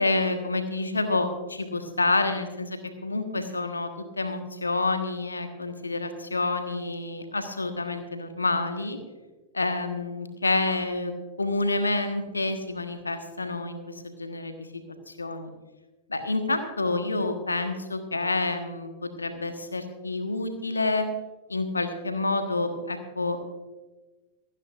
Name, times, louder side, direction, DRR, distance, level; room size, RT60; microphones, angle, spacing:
voice 1, 0.0-3.9 4.2-9.0 9.5-15.5 16.1-21.1 21.5-23.4, left 2 dB, 80° left, 7 dB, 1.4 m, -28 dB
27.0 x 9.8 x 2.6 m, 1.2 s
figure-of-eight pair, 90°, 0 cm